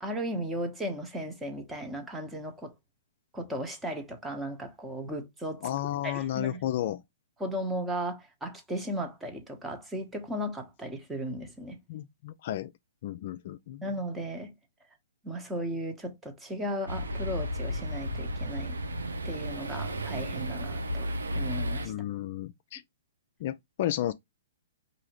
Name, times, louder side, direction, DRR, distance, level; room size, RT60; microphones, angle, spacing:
voice 1, 0.0-2.7 3.3-5.7 6.0-6.6 7.4-11.8 13.8-14.6 15.2-18.8 19.2-21.9, equal, 10° right, 1.0 m, -36 dB
voice 2, 5.6-7.0 11.9-12.7 13.0-13.8 21.8-22.8 23.4-24.1, left 12 dB, 50° left, 0.4 m, -32 dB
sound 1, 16.9-21.9, equal, 90° right, 0.7 m, -33 dB
4.8 x 2.7 x 2.9 m
hypercardioid pair, 130°, 0 cm